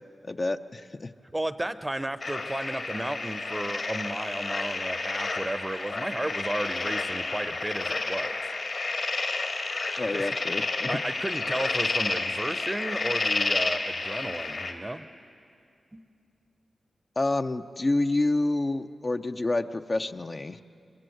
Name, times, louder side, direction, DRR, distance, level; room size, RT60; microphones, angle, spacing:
voice 1, 0.2-1.1 10.0-10.9 17.2-20.6, left 2 dB, 40° left, 7 dB, 0.7 m, -28 dB
voice 2, 1.3-8.4 10.1-10.3 10.9-15.1 15.9-16.1, right 1 dB, 15° right, 12 dB, 0.8 m, -33 dB
sound 1, 2.2-14.7, left 3 dB, 60° left, 2.3 m, -30 dB
24.0 x 21.5 x 7.8 m, 2.5 s
cardioid pair, 60°, 0 cm